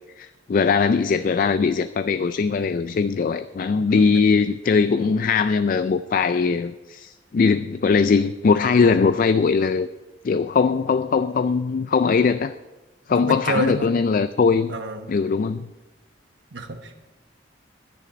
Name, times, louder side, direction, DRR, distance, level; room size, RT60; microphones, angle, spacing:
voice 1, 0.2-9.9 10.2-12.5 13.1-14.8 15.1-15.7, left 5 dB, 50° left, 12 dB, 0.3 m, -20 dB
voice 2, 13.2-13.9 14.7-15.1 16.5-17.0, right 1 dB, 85° right, 6 dB, 1.2 m, -28 dB
11.0 x 9.9 x 5.1 m, 1.1 s
head